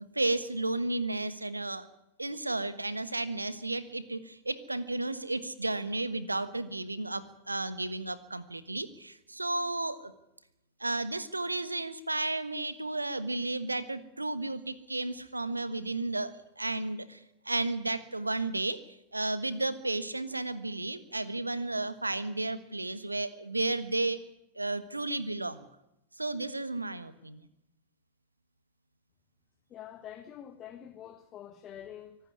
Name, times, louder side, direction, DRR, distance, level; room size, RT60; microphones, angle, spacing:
voice 1, 0.1-1.9 2.2-10.1 10.8-18.8 19.1-24.2 24.5-25.6 26.1-27.5, right 2 dB, 85° right, 1.4 m, -33 dB
voice 2, 29.7-32.2, left 10 dB, 30° left, 1.4 m, -46 dB
24.5 x 12.0 x 9.8 m
figure-of-eight pair, 90°, 0 cm